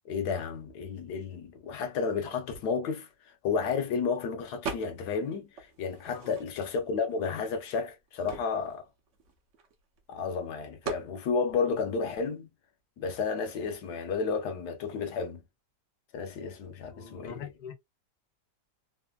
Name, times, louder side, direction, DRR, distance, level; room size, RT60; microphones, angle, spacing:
voice 1, 0.0-8.9 10.1-12.5 13.0-15.4 16.1-17.5, left 5 dB, 70° left, 1.2 m, -32 dB
sound 1, 4.6-5.2 5.6-6.8 7.4-7.5 7.8-10.0 10.8-11.1, right 5 dB, 60° right, 0.8 m, -40 dB
voice 2, 16.9-17.7, left 8 dB, 85° left, 0.4 m, -43 dB
3.5 x 2.1 x 2.2 m
omnidirectional pair, 2.0 m